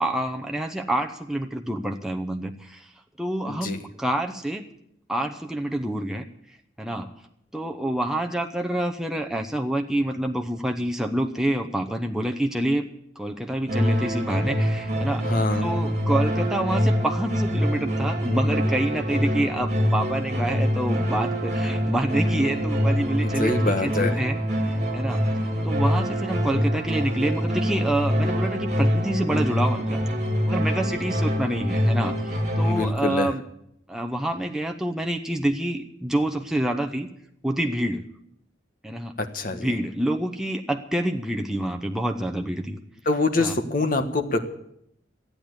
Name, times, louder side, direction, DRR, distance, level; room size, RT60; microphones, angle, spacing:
voice 1, 0.0-2.9 3.2-4.6 5.1-6.3 6.8-7.1 7.5-12.8 13.2-24.4 24.7-25.2 25.6-30.0 30.5-33.4 33.9-37.1 37.4-38.0 38.8-39.1 39.5-42.8 43.4-43.5, right 1 dB, 5° right, 3 dB, 0.8 m, -27 dB
voice 2, 3.4-3.8 15.3-15.7 23.4-24.2 32.6-33.3 39.2-39.7 43.0-44.4, left 3 dB, 45° left, 5 dB, 1.4 m, -25 dB
sound 1, 13.7-32.9, equal, 40° right, 2.8 m, -25 dB
14.5 x 8.8 x 9.7 m, 0.75 s
head